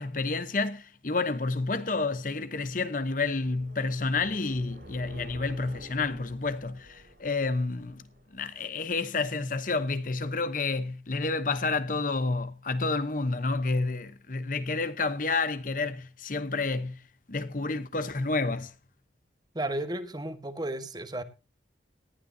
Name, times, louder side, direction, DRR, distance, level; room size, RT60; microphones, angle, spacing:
voice 1, 0.0-8.0 8.3-17.0 17.3-18.7, left 3 dB, 45° left, 1.0 m, -30 dB
sound 1, 1.6-8.9, right 1 dB, 70° right, 4.7 m, -51 dB
voice 2, 19.5-21.2, right 1 dB, 20° right, 1.5 m, -33 dB
19.0 x 12.0 x 2.8 m
head